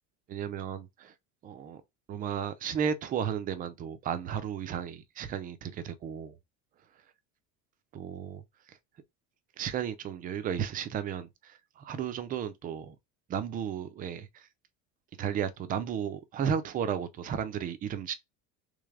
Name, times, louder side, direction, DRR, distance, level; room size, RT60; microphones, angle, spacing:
voice 1, 0.3-1.1 1.4-1.8 2.1-6.3 7.9-8.4 8.7-8.8 9.6-13.0 13.3-14.5 15.2-18.1, right 8 dB, 25° right, 0.4 m, -34 dB
3.3 x 3.3 x 3.5 m
cardioid pair, 160°, 34 cm